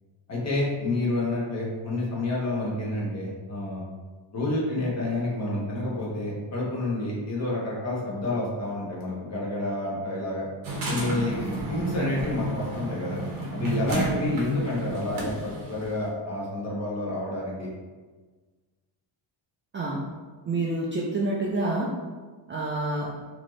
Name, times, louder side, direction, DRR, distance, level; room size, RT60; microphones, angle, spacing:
voice 1, 0.3-3.8 4.3-10.5 10.9-13.2 13.5-17.7, left 2 dB, 35° left, -5 dB, 1.2 m, -29 dB
sound 1, 10.6-15.9, right 2 dB, 45° right, 0.9 m, -31 dB
voice 2, 20.5-21.9 22.5-23.1, right 2 dB, 25° right, -4 dB, 0.4 m, -27 dB
4.2 x 3.0 x 3.1 m, 1.4 s
cardioid pair, 150°, 47 cm